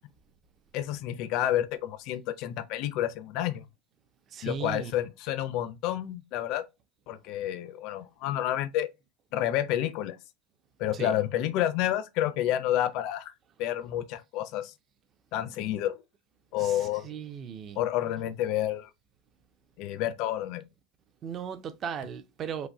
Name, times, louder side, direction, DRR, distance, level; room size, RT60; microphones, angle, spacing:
voice 1, 0.7-3.7 4.4-6.7 7.1-8.9 9.3-10.2 10.8-13.3 13.6-14.7 15.3-16.0 16.5-17.1 17.8-18.9 19.8-20.6, left 12 dB, 40° left, 0.4 m, -29 dB
voice 2, 4.3-4.9 10.9-11.1 16.6-16.7 17.0-17.8 21.2-22.7, right 7 dB, 25° right, 0.4 m, -36 dB
4.0 x 2.6 x 4.4 m
supercardioid pair, 180°, 0 cm